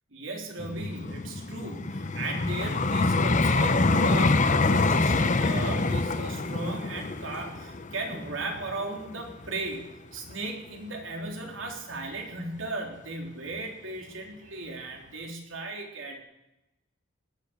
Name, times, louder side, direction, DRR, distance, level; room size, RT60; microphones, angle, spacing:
voice 1, 0.1-16.2, right 2 dB, 80° right, 1 dB, 3.6 m, -36 dB
Vehicle, 0.6-9.7 10.3-10.5, left 3 dB, 40° left, 0.8 m, -26 dB
18.5 x 10.5 x 7.0 m, 0.95 s
head